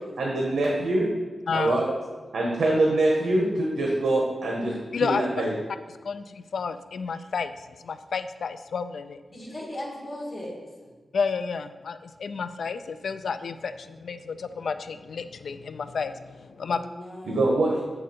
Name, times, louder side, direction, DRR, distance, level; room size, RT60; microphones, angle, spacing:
voice 1, 0.2-1.1 1.5-1.9 2.3-4.7 5.0-5.5 17.2-17.8, right 2 dB, 85° right, -2 dB, 1.0 m, -24 dB
voice 2, 1.5-1.8 4.9-5.2 6.0-7.5 7.8-9.2 11.1-16.9, left 5 dB, 80° left, 11 dB, 0.3 m, -31 dB
voice 3, 9.3-10.9 16.6-17.5, left 1 dB, 45° left, -4 dB, 2.1 m, -38 dB
6.7 x 4.9 x 4.2 m, 1.3 s
wide cardioid pair, 95°, 0 cm